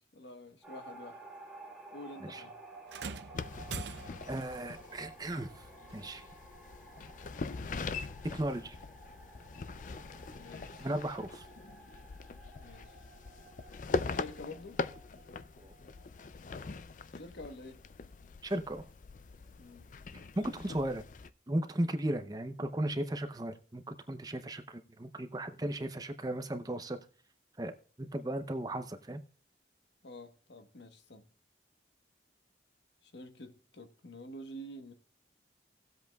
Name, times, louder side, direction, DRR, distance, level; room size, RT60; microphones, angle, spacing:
voice 1, 0.1-1.2 1.9-2.6 10.3-10.9 12.6-12.9 14.1-14.8 17.1-17.8 19.6-19.9 20.4-20.5 30.0-31.2 33.0-34.9, left 1 dB, 75° left, 1.2 m, -48 dB
sound 1, 0.6-16.6, right 2 dB, 5° right, 1.6 m, -54 dB
sound 2, 2.9-4.4 5.9-6.0 6.9-7.0, right 6 dB, 75° right, 0.6 m, -44 dB
sound 3, 3.3-21.3, left 4 dB, 45° left, 0.4 m, -42 dB
voice 2, 4.3-5.7 5.9-6.2 8.3-8.8 10.8-11.4 15.6-15.7 18.4-18.8 20.4-21.0 21.5-27.0 27.6-29.2, right 1 dB, 20° right, 0.6 m, -36 dB
17.5 x 7.8 x 2.3 m
head